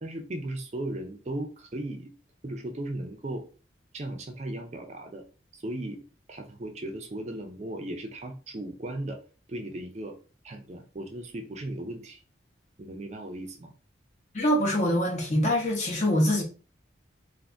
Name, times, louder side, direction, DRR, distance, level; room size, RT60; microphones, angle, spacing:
voice 1, 0.0-2.1 2.4-3.4 3.9-5.2 5.5-6.0 6.3-9.2 9.5-10.2 10.4-12.2 12.8-13.7, right 1 dB, 40° right, 0.5 m, -36 dB
voice 2, 14.3-16.4, equal, 40° left, 0.9 m, -24 dB
2.5 x 2.5 x 3.4 m
head